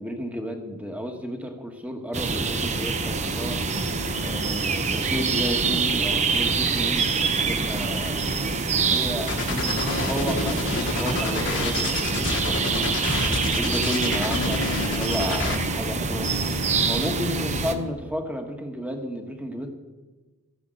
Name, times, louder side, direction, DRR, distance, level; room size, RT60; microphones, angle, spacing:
voice 1, 0.0-3.6 4.2-8.2 8.7-13.0 13.5-16.3 16.8-19.7, equal, 5° right, 3 dB, 1.4 m, -32 dB
sound 1, 2.1-17.7, right 4 dB, 30° right, 0.8 m, -25 dB
sound 2, 2.8-17.9, left 4 dB, 60° right, 5.6 m, -40 dB
sound 3, 9.3-15.6, left 4 dB, 55° left, 1.6 m, -29 dB
14.5 x 7.6 x 7.8 m, 1.2 s
head